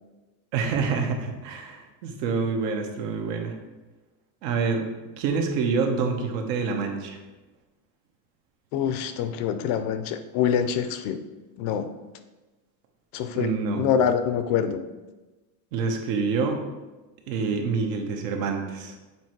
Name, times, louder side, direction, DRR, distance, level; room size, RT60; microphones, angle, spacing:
voice 1, 0.5-3.6 4.4-4.9 5.2-7.2 13.3-13.8 15.7-16.6 17.3-19.0, right 5 dB, 85° right, 3 dB, 1.2 m, -27 dB
voice 2, 8.7-11.2 11.6-11.9 13.1-13.5 13.8-14.9, left 8 dB, 45° left, 9 dB, 0.4 m, -25 dB
7.1 x 3.2 x 4.5 m, 1.2 s
cardioid pair, 150°, 48 cm